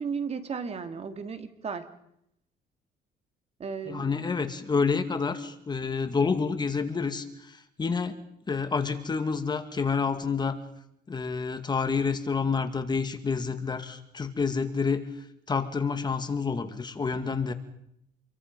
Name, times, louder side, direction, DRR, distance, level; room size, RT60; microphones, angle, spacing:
voice 1, 0.0-1.9 3.6-4.3, right 5 dB, 40° right, 8 dB, 2.4 m, -34 dB
voice 2, 3.9-8.2 8.5-10.6 11.1-15.0 15.5-17.5, left 5 dB, 25° left, 8 dB, 2.2 m, -28 dB
28.0 x 23.0 x 5.4 m, 0.77 s
cardioid pair, 110°, 17 cm